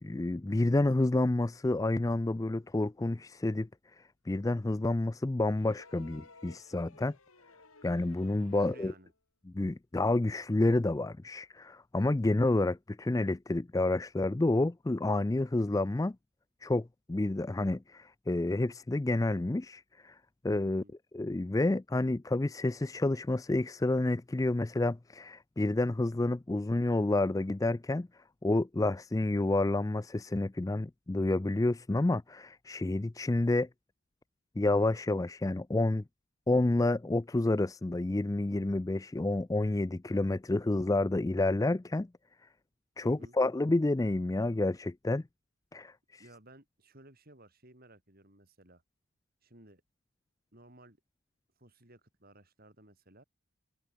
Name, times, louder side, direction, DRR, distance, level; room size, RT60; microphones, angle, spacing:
voice 1, 0.0-3.7 4.3-7.1 7.8-8.9 9.5-16.2 16.6-20.2 20.4-20.8 21.1-28.1 28.4-33.7 34.6-36.0 36.5-42.1 43.0-45.2 45.7-46.2, left 2 dB, 15° left, 0.3 m, -29 dB
sound 1, 5.6-9.1 10.4-10.5, left 3 dB, 75° left, 4.1 m, -57 dB
voice 2, 8.5-9.1 20.6-21.0 43.0-43.4 46.2-48.8 49.4-49.8 50.5-51.0 51.6-53.2, right 1 dB, 40° right, 3.5 m, -57 dB
head